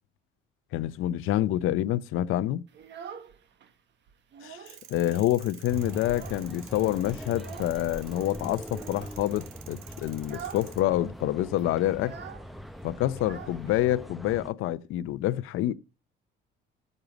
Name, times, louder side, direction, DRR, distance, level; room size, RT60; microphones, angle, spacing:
voice 1, 0.7-2.6 4.4-12.2 12.8-15.7, left 14 dB, 75° left, 0.7 m, -27 dB
Child speech kid speaking, 2.7-3.7 4.1-4.8 5.1-5.2 5.6-6.7 7.3-7.8 8.7-9.2 9.6-9.8 10.2-10.7 11.0-11.1 11.3-14.1, right 8 dB, 60° right, 1.4 m, -45 dB
sound 1, 4.7-10.8, right 10 dB, 80° right, 1.2 m, -50 dB
sound 2, 5.7-14.5, equal, ahead, 0.6 m, -41 dB
13.0 x 5.4 x 6.0 m
cardioid pair, 105°, 21 cm